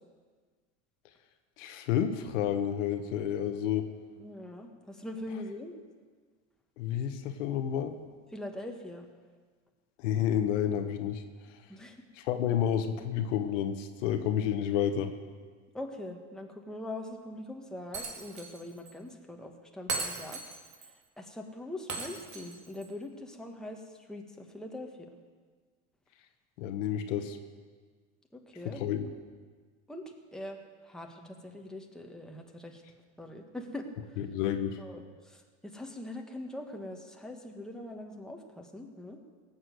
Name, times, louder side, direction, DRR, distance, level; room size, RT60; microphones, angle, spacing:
voice 1, 1.6-3.9 6.8-7.9 10.0-11.2 12.2-15.1 26.6-27.4 28.6-29.1 34.2-34.8, left 9 dB, 85° left, 7 dB, 1.3 m, -30 dB
voice 2, 4.2-5.8 8.3-9.1 11.7-12.0 15.7-20.4 21.2-23.8 24.1-24.9 28.3-28.8 29.9-30.0 30.3-30.6 30.8-32.8 33.2-33.9 34.8-39.2, left 1 dB, ahead, 1 dB, 1.7 m, -42 dB
Shatter, 17.9-18.6 18.9-19.0 19.9-20.9 21.9-22.9, right 4 dB, 50° right, 2.4 m, -37 dB
17.5 x 7.4 x 8.0 m, 1.5 s
supercardioid pair, 110°, 36 cm